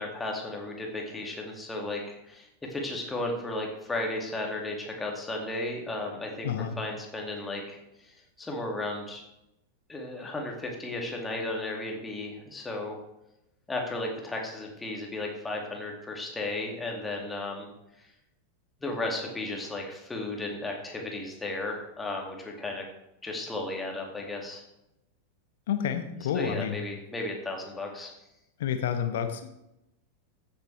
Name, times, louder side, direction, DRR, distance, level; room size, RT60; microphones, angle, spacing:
voice 1, 0.0-6.5 6.8-9.2 9.9-13.0 13.7-17.7 18.0-18.1 18.8-22.8 23.2-24.6 26.3-28.1, left 2 dB, 10° left, 0 dB, 2.4 m, -34 dB
voice 2, 6.4-6.8 25.7-26.8 28.6-29.5, left 8 dB, 55° left, 8 dB, 1.1 m, -29 dB
14.5 x 7.3 x 3.4 m, 0.88 s
figure-of-eight pair, 90°, 0 cm